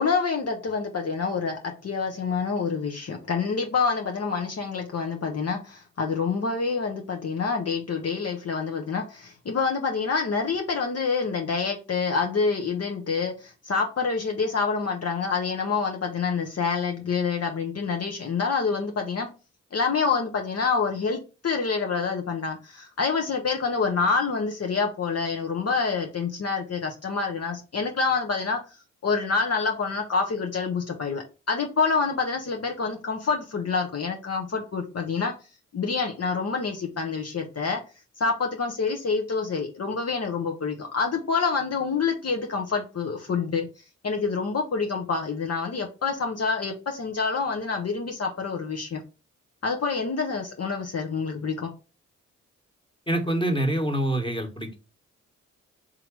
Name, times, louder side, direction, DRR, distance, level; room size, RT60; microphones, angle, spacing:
voice 1, 0.0-19.3 19.7-28.6 29.0-35.3 35.7-37.8 38.2-43.7 44.0-49.0 49.6-51.7, left 5 dB, 50° left, 2 dB, 1.0 m, -27 dB
voice 2, 53.1-54.8, right 1 dB, 15° left, 4 dB, 1.6 m, -25 dB
3.9 x 2.9 x 4.7 m, 0.32 s
supercardioid pair, 45°, 32 cm